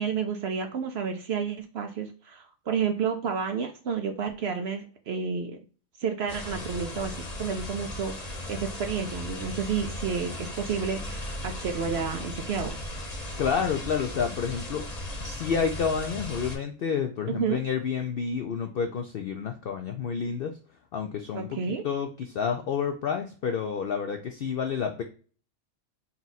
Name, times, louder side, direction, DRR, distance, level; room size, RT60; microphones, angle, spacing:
voice 1, 0.0-5.6 6.0-12.8 17.3-17.6 21.3-21.8, right 6 dB, 65° right, 5 dB, 0.7 m, -30 dB
sound 1, 6.3-16.6, left 1 dB, 35° left, 0.9 m, -37 dB
voice 2, 13.4-14.9 15.2-20.5 20.9-25.0, left 6 dB, 70° left, 5 dB, 0.5 m, -29 dB
4.3 x 2.3 x 4.0 m, 0.39 s
omnidirectional pair, 1.5 m